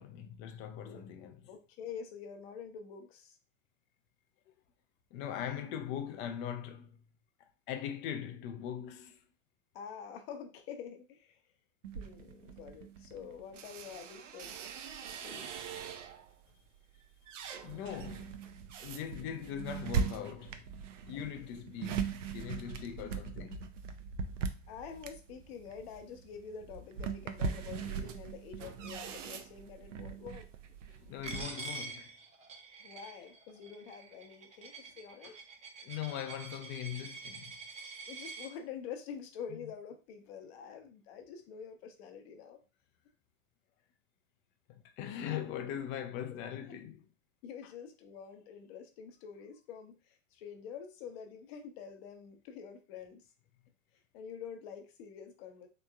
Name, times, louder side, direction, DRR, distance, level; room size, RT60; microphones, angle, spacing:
voice 1, 0.0-1.5 5.1-7.0 7.7-9.2 17.6-18.4 18.8-20.7 21.1-23.6 30.9-32.1 35.2-35.3 35.8-37.6 39.6-39.7 44.7-47.0, left 9 dB, 30° left, 0.4 m, -41 dB
voice 2, 1.5-3.4 9.7-11.4 11.9-14.6 15.2-15.5 24.7-30.4 32.8-35.4 38.0-42.6 47.4-53.2 54.1-55.7, left 7 dB, 50° left, 0.8 m, -47 dB
sound 1, 11.8-16.3 16.8-31.5, right 6 dB, 75° right, 0.5 m, -40 dB
Coin (dropping), 31.2-38.5, right 4 dB, 20° right, 0.6 m, -46 dB
3.4 x 3.0 x 2.3 m
figure-of-eight pair, 90°, 38 cm